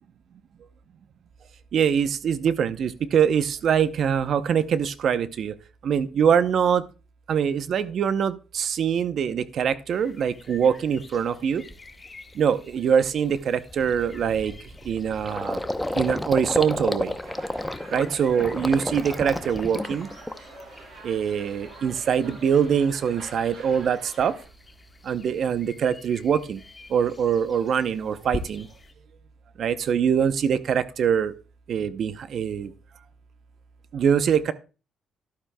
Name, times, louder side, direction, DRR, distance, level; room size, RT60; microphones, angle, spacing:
voice 1, 1.7-5.5 5.8-6.8 7.3-11.6 12.3-14.5 14.8-15.6 16.0-17.2 17.9-20.1 21.0-24.3 25.0-26.6 26.9-28.7 29.6-31.3 31.7-32.7 33.9-34.5, right 7 dB, 60° right, 13 dB, 0.7 m, -23 dB
sound 1, 9.9-28.9, left 3 dB, 30° left, 1.4 m, -47 dB
Gurgling, 11.1-11.2 11.7-11.9 12.3-12.5 12.7-20.8 21.1-21.8, left 1 dB, 10° left, 0.8 m, -32 dB
sound 2, 17.2-24.4, right 2 dB, 85° right, 7.4 m, -45 dB
13.5 x 11.5 x 2.3 m, 0.33 s
cardioid pair, 90°, 0 cm